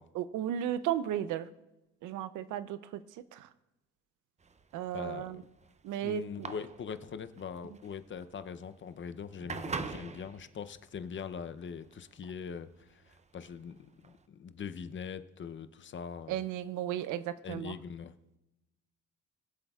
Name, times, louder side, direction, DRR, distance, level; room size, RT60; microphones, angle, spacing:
voice 1, 0.1-1.5 2.0-3.0 3.3-3.5 4.7-5.4 5.8-6.5 16.3-17.7, right 11 dB, 90° right, 14 dB, 0.6 m, -34 dB
sound 1, 4.4-14.3, right 4 dB, 25° right, 0.5 m, -44 dB
voice 2, 4.9-5.5 6.0-13.0 13.3-16.4 17.4-18.4, left 6 dB, 40° left, 11 dB, 0.6 m, -42 dB
21.5 x 7.7 x 2.4 m, 0.99 s
cardioid pair, 90°, 30 cm